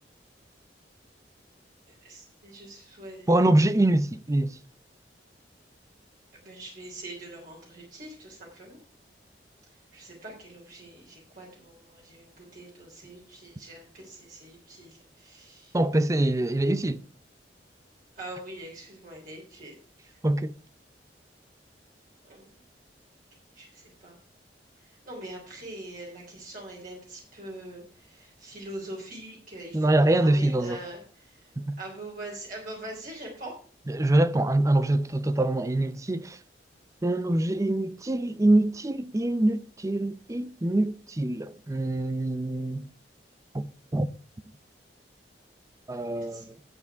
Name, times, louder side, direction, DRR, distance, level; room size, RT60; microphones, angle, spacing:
voice 1, 2.0-3.8 6.3-8.8 9.9-15.8 18.2-19.8 20.0-20.2 22.2-22.5 23.5-24.2 25.1-31.5 31.8-33.5 45.9-46.5, right 1 dB, 50° right, 3.4 m, -43 dB
voice 2, 3.3-4.5 15.7-17.0 20.2-20.5 29.7-30.8 31.6-31.8 33.9-36.4 37.0-42.9 43.5-44.1 45.9-46.4, right 1 dB, 20° right, 0.5 m, -24 dB
11.0 x 8.4 x 4.7 m
head